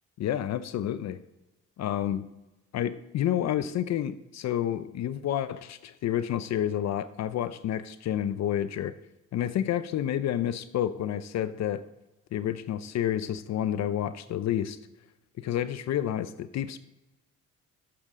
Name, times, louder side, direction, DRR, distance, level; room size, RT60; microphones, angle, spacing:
voice 1, 0.2-1.2 1.8-2.2 2.7-8.9 9.3-11.8 12.3-14.8 15.4-16.8, left 11 dB, 65° left, 14 dB, 0.5 m, -29 dB
11.5 x 7.5 x 3.6 m, 1.0 s
cardioid pair, 90°, 30 cm